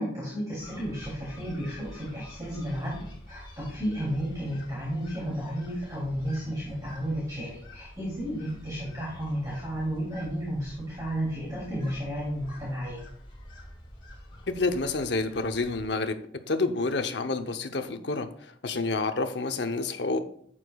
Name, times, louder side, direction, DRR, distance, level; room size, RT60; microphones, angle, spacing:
voice 1, 0.0-13.0, equal, 20° right, -5 dB, 2.7 m, -33 dB
sound 1, 0.6-15.9, equal, 30° left, 2.4 m, -47 dB
voice 2, 14.5-16.2 16.5-20.2, left 3 dB, 70° left, 7 dB, 0.8 m, -29 dB
11.0 x 8.7 x 2.3 m, 0.64 s
head